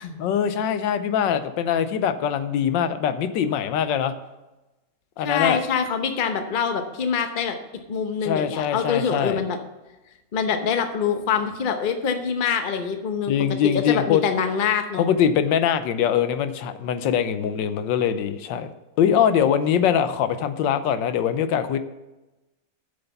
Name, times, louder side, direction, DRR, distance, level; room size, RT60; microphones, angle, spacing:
voice 1, 0.2-4.1 5.2-5.6 8.2-9.4 13.3-14.2 15.0-18.7 19.0-21.8, left 8 dB, 85° left, 11 dB, 1.4 m, -22 dB
voice 2, 5.2-7.6 7.9-9.6 10.3-13.3 13.6-15.0, left 6 dB, 40° left, 7 dB, 0.8 m, -25 dB
7.9 x 6.8 x 6.9 m, 1.0 s
omnidirectional pair, 2.0 m